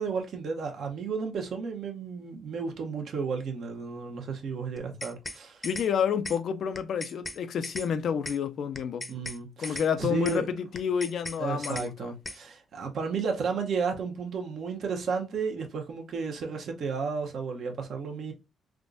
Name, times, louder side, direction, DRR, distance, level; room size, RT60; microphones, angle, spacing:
voice 1, 0.0-5.7 9.1-10.5 11.4-18.3, right 5 dB, 65° right, 0.9 m, -33 dB
sound 1, 4.8-5.4 5.6-5.9 6.2-6.4 6.7-7.4 7.6-7.9 8.2-8.4 8.7-9.4 9.6-9.9 10.2-10.4 10.7-11.4 11.6-11.9 12.2-12.4, left 2 dB, 20° left, 0.6 m, -37 dB
voice 2, 5.6-9.1 9.6-12.1, left 7 dB, 65° left, 0.4 m, -29 dB
3.5 x 2.5 x 2.5 m
cardioid pair, 75°, 0 cm